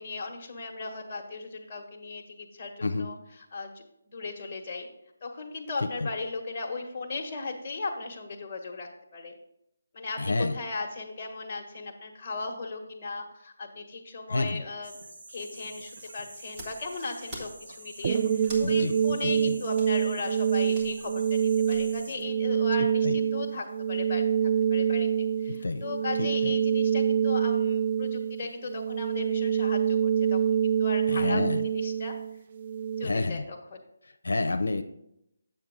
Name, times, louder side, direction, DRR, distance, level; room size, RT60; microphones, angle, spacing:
voice 1, 0.0-3.1 3.5-4.9 5.2-9.3 9.9-14.9 15.3-31.4 31.7-32.2 33.0-33.8, left 3 dB, 35° left, 1 dB, 1.4 m, -37 dB
voice 2, 5.8-6.1 10.2-10.6 14.3-14.6 18.6-19.0 19.2-19.6 22.8-23.2 25.5-25.9 26.2-26.5 31.1-31.6 33.0-33.5 34.0-34.8, left 3 dB, 85° left, 7 dB, 0.6 m, -29 dB
sound 1, 14.8-22.2, right 2 dB, 70° right, 1.6 m, -48 dB
sound 2, 15.9-22.3, equal, 20° right, 1.8 m, -48 dB
sound 3, 18.0-33.1, right 8 dB, 40° right, 0.3 m, -26 dB
8.9 x 7.1 x 3.7 m, 0.80 s
figure-of-eight pair, 160°, 0 cm